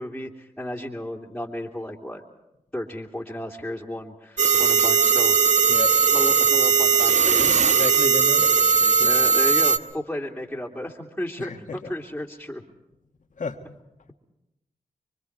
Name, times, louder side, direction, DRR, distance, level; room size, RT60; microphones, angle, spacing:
voice 1, 0.0-2.2 2.7-5.4 6.1-7.5 9.0-12.6 13.6-13.7, left 1 dB, 5° left, -4 dB, 2.7 m, -33 dB
sound 1, 4.4-9.8, right 6 dB, 50° right, 1.0 m, -19 dB
voice 2, 7.4-9.1 11.4-11.9 13.4-13.6, left 4 dB, 60° left, 5 dB, 1.7 m, -33 dB
25.5 x 24.0 x 4.7 m, 0.93 s
supercardioid pair, 40°, 15 cm